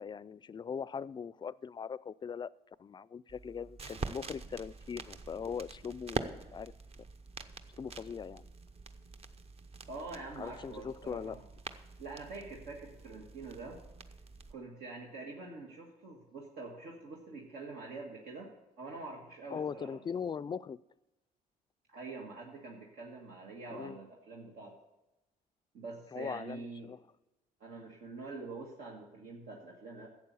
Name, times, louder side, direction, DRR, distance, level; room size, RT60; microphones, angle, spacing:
voice 1, 0.0-2.5 2.8-6.7 7.8-8.5 10.4-11.4 19.5-20.8 23.7-24.0 26.1-27.0, left 6 dB, 30° left, 19 dB, 0.4 m, -40 dB
sound 1, 3.3-14.5, right 4 dB, 40° right, 0.8 m, -45 dB
voice 2, 9.9-11.4 12.0-13.8 14.5-18.5 18.8-20.0 21.9-24.7 25.7-26.9 27.6-30.1, right 3 dB, 85° right, -2 dB, 1.8 m, -45 dB
11.5 x 8.1 x 7.0 m, 0.98 s
cardioid pair, 95°, 16 cm